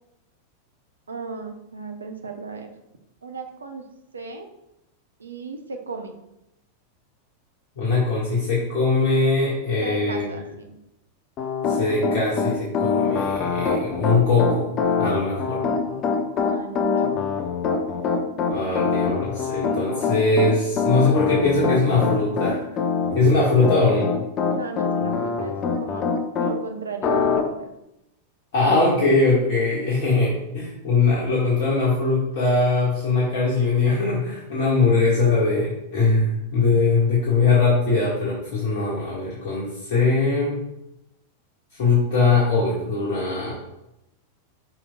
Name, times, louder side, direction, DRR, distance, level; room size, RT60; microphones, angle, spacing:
voice 1, 1.1-2.7 3.2-3.9 4.1-4.5 5.2-6.2 9.8-10.8 16.3-17.1 23.5-23.7 24.5-26.1 26.4-27.7, right 4 dB, 75° right, 5 dB, 0.8 m, -36 dB
voice 2, 7.8-10.3 11.7-14.7 15.0-15.6 18.5-22.6 23.1-24.1 28.5-40.6 41.8-43.6, left 3 dB, 50° left, -5 dB, 1.7 m, -21 dB
Piano, 11.4-26.5 27.0-27.4, left 5 dB, 35° left, 0.8 m, -24 dB
11.0 x 5.3 x 2.3 m, 0.88 s
figure-of-eight pair, 90°, 0 cm